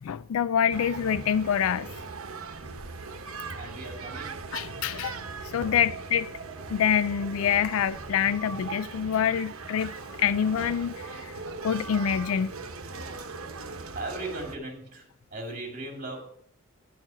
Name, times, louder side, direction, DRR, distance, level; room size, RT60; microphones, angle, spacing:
voice 1, 0.0-1.9 4.5-5.2 5.4-6.3 6.7-11.3 11.6-12.5, left 8 dB, 75° left, 0.3 m, -26 dB
sound 1, 0.7-14.6, right 4 dB, 75° right, 0.9 m, -39 dB
voice 2, 3.6-4.4 13.9-16.2, right 2 dB, 35° right, 2.4 m, -37 dB
10.0 x 4.6 x 7.5 m
head